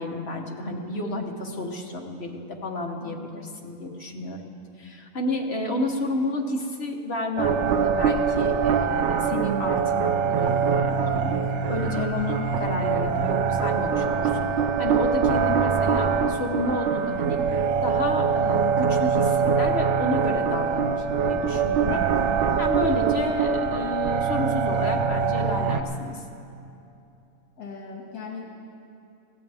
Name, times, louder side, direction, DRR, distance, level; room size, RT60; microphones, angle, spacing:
voice 1, 0.0-4.5 4.8-11.3 11.7-14.5 14.8-17.4 17.8-22.0 22.6-26.2, left 2 dB, 45° left, 1 dB, 1.4 m, -31 dB
voice 2, 3.0-3.4 21.9-22.5 27.6-28.5, left 5 dB, 85° left, -2 dB, 2.3 m, -39 dB
sound 1, 7.4-25.8, right 6 dB, 60° right, 0.8 m, -23 dB
20.5 x 16.0 x 3.5 m, 2.6 s
omnidirectional pair, 1.6 m